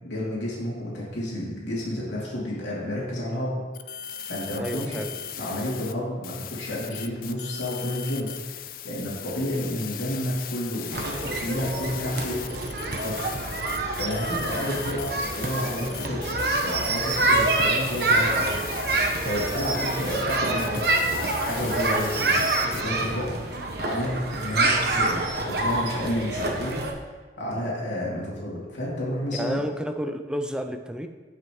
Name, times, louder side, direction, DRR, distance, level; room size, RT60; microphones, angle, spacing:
voice 1, 0.0-3.6 3.9-4.0 4.2-5.0 5.4-8.3 8.8-12.5 12.9-13.2 14.0-18.6 18.9-20.8 21.4-23.3 23.8-26.8 27.4-29.6, left 1 dB, 85° left, -6 dB, 2.8 m, -30 dB
sound 1, 3.7-5.9 6.2-22.8, left 10 dB, 50° left, 0.5 m, -38 dB
voice 2, 4.6-5.2 29.3-31.1, equal, 5° right, 6 dB, 0.5 m, -31 dB
sound 2, 10.9-26.9, right 2 dB, 60° right, 1.1 m, -26 dB
17.5 x 6.0 x 3.1 m, 1.4 s
head